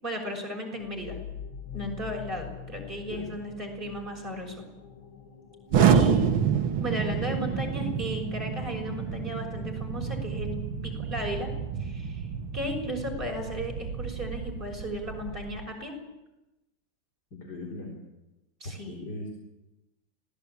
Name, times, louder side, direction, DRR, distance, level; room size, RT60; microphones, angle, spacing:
voice 1, 0.0-1.1 1.7-4.6 5.8-6.3 6.8-10.6 10.8-11.5 11.8-12.3 12.5-15.9 18.6-19.0, equal, 20° right, 1 dB, 6.3 m, -35 dB
sound 1, 0.7-10.1, left 7 dB, 65° left, 3.0 m, -45 dB
Explosion, 5.7-15.6, right 7 dB, 70° right, 2.1 m, -28 dB
voice 2, 17.3-18.0 18.9-19.3, left 2 dB, 45° left, 0 dB, 4.6 m, -39 dB
26.0 x 18.5 x 8.6 m, 0.97 s
omnidirectional pair, 2.4 m